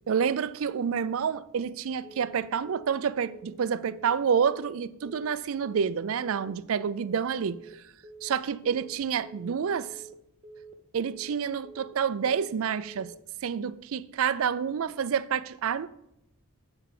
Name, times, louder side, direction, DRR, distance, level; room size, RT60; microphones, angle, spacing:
voice 1, 0.1-7.6 8.2-9.9 10.9-13.1 13.4-15.9, right 7 dB, 65° right, 0.4 m, -28 dB
Telephone, 2.0-2.3 2.6-2.9 3.2-3.5 3.8-4.1 4.4-4.7 5.0-5.3 5.6-5.9 6.2-6.5 6.8-7.1 7.4-7.7 8.0-8.3 8.6-8.9 9.2-9.5 9.8-10.1 10.4-10.7 11.0-11.3 11.6-11.9 12.2-12.5 12.8-13.1, right 3 dB, 25° right, 0.7 m, -48 dB
8.9 x 4.4 x 6.6 m
head